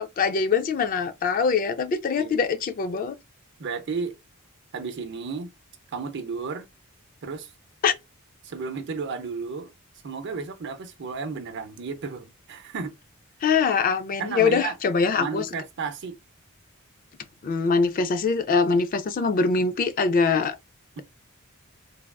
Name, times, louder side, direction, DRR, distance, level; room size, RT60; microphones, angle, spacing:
voice 1, 0.0-3.2 7.8-7.9 13.4-15.5 17.4-20.6, left 5 dB, 40° left, 0.3 m, -23 dB
voice 2, 3.6-4.1 4.7-5.5 5.9-6.7 7.2-7.5 8.4-9.7 10.0-12.9 14.2-14.7 15.2-16.2 21.0-21.1, right 5 dB, 55° right, 0.6 m, -33 dB
3.4 x 2.3 x 2.2 m
head